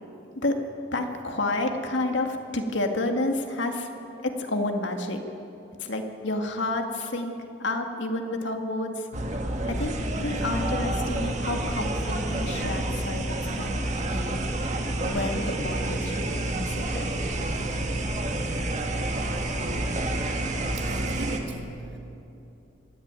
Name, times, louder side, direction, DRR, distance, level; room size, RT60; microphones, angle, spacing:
voice 1, 0.9-3.9 4.2-5.2 5.8-7.3 7.6-9.1 9.7-13.8 14.1-14.4 15.0-17.1, left 2 dB, 75° left, 4 dB, 2.1 m, -30 dB
sound 1, 9.1-21.4, right 1 dB, 35° right, 1.8 m, -29 dB
voice 2, 19.3-19.9 20.8-22.0, right 1 dB, 60° right, 2 dB, 2.7 m, -38 dB
25.5 x 12.5 x 9.0 m, 2.9 s
head